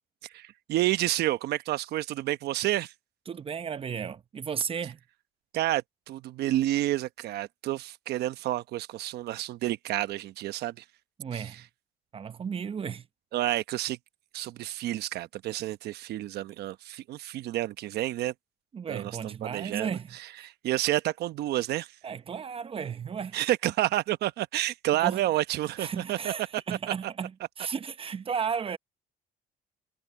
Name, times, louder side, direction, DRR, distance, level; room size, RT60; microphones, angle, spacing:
voice 1, 0.2-2.9 5.5-10.8 11.3-11.4 13.3-14.0 14.3-18.3 18.9-19.9 20.6-21.9 23.3-26.6, right 15 dB, 75° right, 1.0 m, -29 dB
voice 2, 3.3-5.0 11.2-11.7 12.1-13.1 18.7-20.5 22.0-23.4 25.0-25.2 25.8-28.8, right 7 dB, 35° right, 0.9 m, -34 dB
cardioid pair, 110°, 17 cm